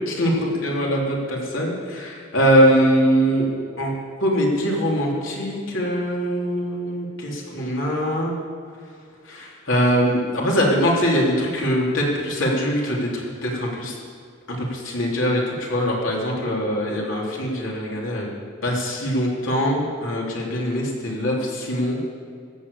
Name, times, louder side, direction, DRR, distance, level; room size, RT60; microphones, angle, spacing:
voice 1, 0.1-3.5 3.8-3.9 4.2-8.4 9.2-13.9 14.5-18.3 18.6-22.0, equal, 75° left, -3 dB, 3.3 m, -22 dB
14.0 x 7.7 x 8.6 m, 2.2 s
head